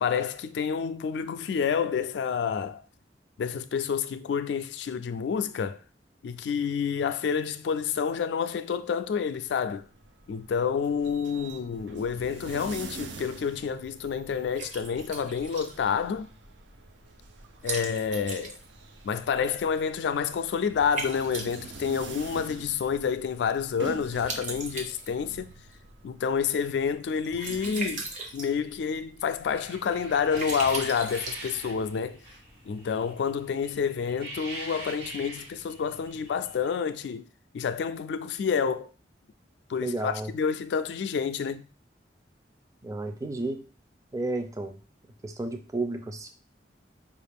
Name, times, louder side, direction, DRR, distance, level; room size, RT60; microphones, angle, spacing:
voice 1, 0.0-2.8 3.4-5.8 6.2-9.9 10.3-16.3 17.6-18.6 19.0-25.5 26.0-28.1 28.3-32.2 32.6-37.3 37.5-38.9 39.7-41.7, left 6 dB, 70° left, 0.3 m, -29 dB
sound 1, 9.8-26.6, right 3 dB, 85° right, 0.6 m, -46 dB
Liquid, 12.8-32.1, right 3 dB, 45° right, 0.8 m, -41 dB
sound 2, 29.5-36.7, right 2 dB, 65° right, 1.2 m, -43 dB
voice 2, 39.8-40.3 42.8-43.6 44.1-44.8 45.2-46.3, right 2 dB, 20° right, 0.4 m, -32 dB
4.7 x 2.4 x 3.4 m
head